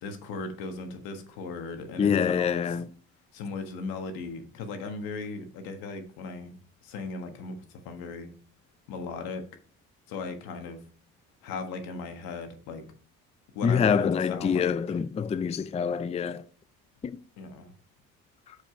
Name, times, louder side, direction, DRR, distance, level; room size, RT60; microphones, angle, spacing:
voice 1, 0.0-2.6 3.3-6.5 6.8-7.6 7.8-8.3 8.9-9.4 10.1-10.8 11.4-12.8 13.5-14.7 17.4-17.7, left 4 dB, 80° left, 1.5 m, -37 dB
voice 2, 2.0-2.9 13.6-16.4 17.0-17.2 18.5-18.6, left 7 dB, 20° left, 0.4 m, -26 dB
7.3 x 5.1 x 5.0 m
supercardioid pair, 70°, 35 cm